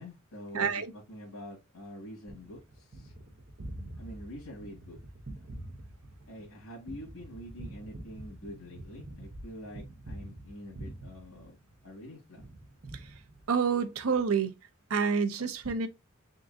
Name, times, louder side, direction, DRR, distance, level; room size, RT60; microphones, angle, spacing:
voice 1, 0.0-3.1 4.0-5.0 6.3-11.5 11.8-12.4, equal, 85° left, 1.5 m, -46 dB
voice 2, 0.5-0.9 13.5-14.5 14.9-15.9, right 6 dB, 90° right, 0.7 m, -28 dB
Gunshot gunfire, 2.3-12.0 12.4-13.8, right 1 dB, 50° right, 0.7 m, -46 dB
3.8 x 3.8 x 2.4 m
head